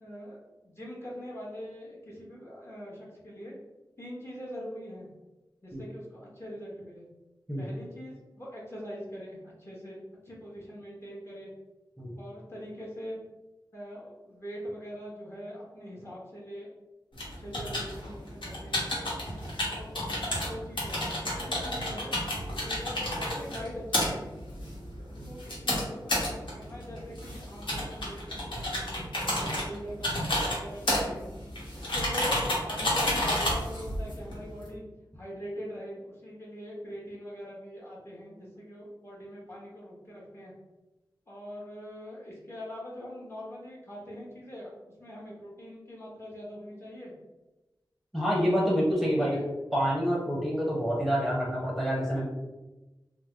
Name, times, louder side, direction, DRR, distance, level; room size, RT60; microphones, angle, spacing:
voice 1, 0.0-3.5 4.0-5.1 5.6-7.1 7.6-10.0 10.2-11.5 12.2-13.2 13.7-16.7 17.4-18.8 19.7-20.0 20.4-22.1 22.6-24.3 25.0-29.0 29.4-31.3 31.7-34.8 35.1-40.5 41.3-44.7 45.0-47.1 48.6-49.5, equal, 30° left, -5 dB, 1.2 m, -43 dB
sound 1, 17.1-34.7, left 1 dB, 85° left, 0.9 m, -31 dB
voice 2, 48.1-49.4 49.7-52.3, equal, ahead, -5 dB, 0.8 m, -27 dB
3.3 x 2.0 x 3.3 m, 1.1 s
wide cardioid pair, 45°, 8 cm